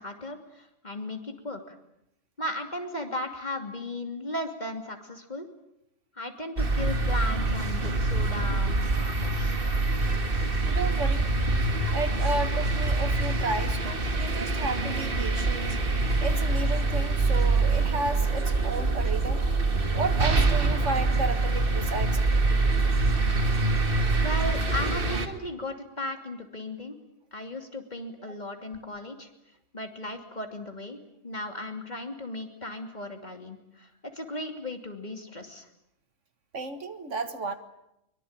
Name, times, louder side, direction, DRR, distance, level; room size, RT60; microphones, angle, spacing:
voice 1, 0.0-1.7 2.4-5.5 6.1-9.6 24.1-27.0 27.3-29.3 29.7-31.0 31.2-35.7, left 1 dB, 30° left, 5 dB, 3.0 m, -36 dB
sound 1, 6.6-25.3, right 3 dB, 40° right, 2.1 m, -25 dB
voice 2, 10.6-11.3 11.9-15.8 16.2-19.5 19.9-22.2 22.5-22.7 36.5-37.6, right 3 dB, 60° right, 9 dB, 1.9 m, -33 dB
23.5 x 23.5 x 8.9 m, 0.83 s
omnidirectional pair, 1.4 m